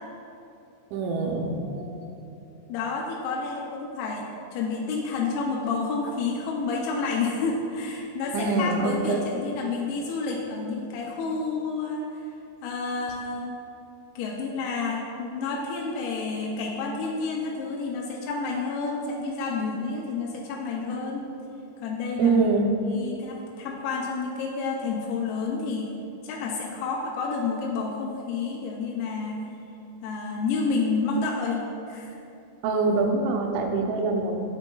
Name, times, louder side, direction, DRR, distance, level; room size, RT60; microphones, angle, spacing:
voice 1, 0.9-1.9 8.3-9.2 22.2-22.7 32.6-34.4, right 3 dB, 85° right, 2 dB, 3.0 m, -24 dB
voice 2, 2.7-12.3 12.6-13.5 14.2-21.2 21.8-22.5 22.9-26.0 26.2-29.5 30.0-32.2, left 4 dB, 85° left, -1 dB, 2.3 m, -30 dB
7.9 x 7.7 x 2.3 m, 2.8 s
omnidirectional pair, 5.2 m